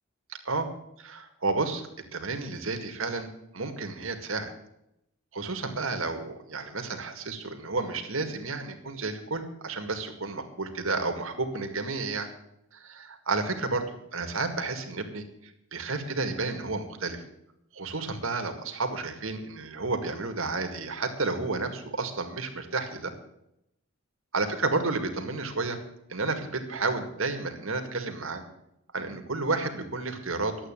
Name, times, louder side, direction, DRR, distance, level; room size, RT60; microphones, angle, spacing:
voice 1, 0.3-0.7 1.0-1.9 2.1-3.3 3.5-4.5 5.3-12.3 12.7-13.8 14.1-17.2 17.7-23.1 24.3-25.8 26.1-28.4 28.9-30.6, right 3 dB, 65° right, 6 dB, 2.0 m, -31 dB
12.0 x 8.5 x 8.9 m, 0.81 s
head